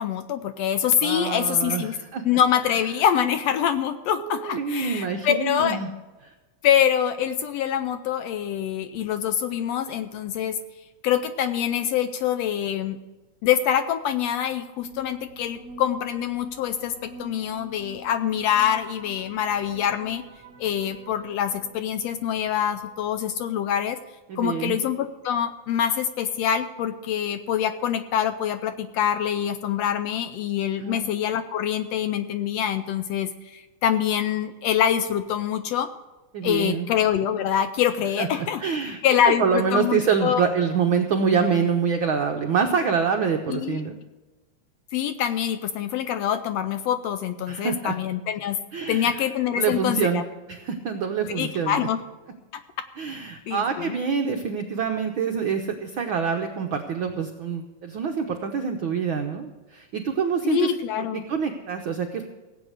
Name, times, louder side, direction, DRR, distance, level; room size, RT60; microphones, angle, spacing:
voice 1, 0.0-2.0 2.2-5.8 6.6-10.6 11.0-13.0 13.4-20.2 20.6-24.0 24.4-35.9 36.4-38.6 39.0-40.4 43.5-43.8 44.9-48.6 48.9-50.2 51.3-52.0 53.5-54.0 60.4-61.2, left 9 dB, 80° left, 10 dB, 1.6 m, -25 dB
voice 2, 1.0-2.2 4.2-5.9 24.3-24.8 30.8-31.0 36.3-36.9 38.2-44.0 47.5-47.9 48.7-49.1 49.6-50.2 50.5-51.8 53.0-60.7 61.3-62.3, right 6 dB, 75° right, 4 dB, 1.1 m, -26 dB
sound 1, 14.8-23.4, right 2 dB, 50° right, 1.4 m, -46 dB
17.0 x 8.2 x 6.5 m, 1.2 s
omnidirectional pair, 3.3 m